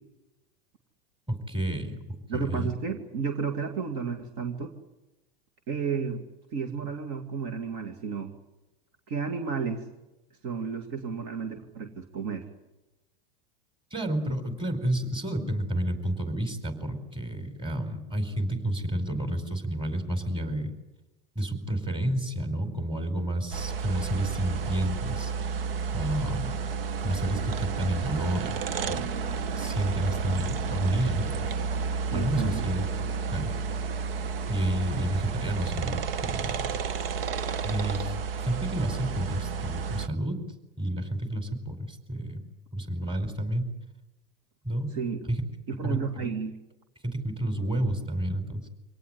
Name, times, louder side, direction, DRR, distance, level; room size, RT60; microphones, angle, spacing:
voice 1, 1.3-2.0 2.3-2.7 13.9-20.7 21.3-25.6 25.9-26.5 27.0-28.6 28.8-29.1 29.6-31.5 32.1-32.9 33.3-33.5 34.5-36.7 37.6-40.4 40.8-42.4 42.7-43.7 44.6-44.9 45.3-45.4 45.8-46.3 47.0-48.7, right 1 dB, 15° right, 8 dB, 4.7 m, -30 dB
voice 2, 2.3-4.7 5.7-6.2 6.5-8.4 9.1-9.8 10.4-12.5 32.1-32.7 44.9-45.2 45.7-46.6, right 6 dB, 55° right, 6 dB, 2.5 m, -32 dB
sound 1, 23.5-40.1, right 5 dB, 75° right, 1.2 m, -31 dB
25.5 x 18.0 x 9.9 m, 1.0 s
hypercardioid pair, 95°, 29 cm